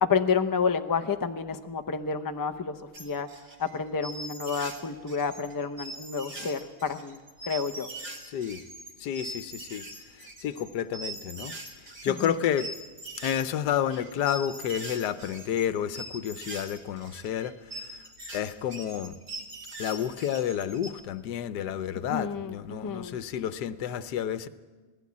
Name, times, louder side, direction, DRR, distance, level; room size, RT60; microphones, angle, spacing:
voice 1, 0.0-2.7 3.0-3.3 3.6-7.2 7.5-7.9 12.1-12.5 22.0-23.2, left 5 dB, 30° left, 8 dB, 0.3 m, -29 dB
sound 1, 2.9-4.8 5.1-20.9, right 2 dB, 55° right, 2.6 m, -42 dB
voice 2, 8.3-8.6 9.0-9.8 10.4-11.5 12.0-12.7 13.2-17.5 18.3-19.1 19.8-24.5, left 9 dB, 85° left, 13 dB, 1.4 m, -30 dB
19.0 x 16.0 x 8.6 m, 1.3 s
omnidirectional pair, 1.7 m